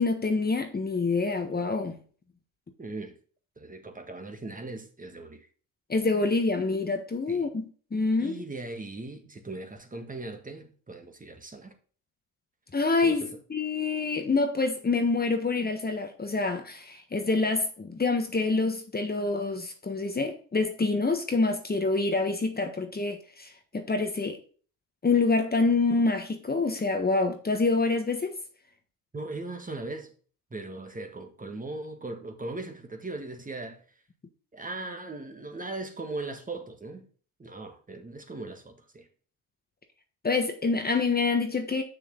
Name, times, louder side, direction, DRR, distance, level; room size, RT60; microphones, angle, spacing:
voice 1, 0.0-2.0 5.9-8.4 12.7-24.4 25.0-28.3 40.2-41.8, left 3 dB, 20° left, 1.4 m, -26 dB
voice 2, 2.8-3.2 3.6-5.5 7.3-7.5 8.2-11.7 13.0-13.2 29.1-30.1 30.5-34.0 34.5-37.1 37.4-39.1, right 2 dB, 20° right, 1.8 m, -39 dB
6.7 x 6.5 x 3.8 m
supercardioid pair, 75°, 42 cm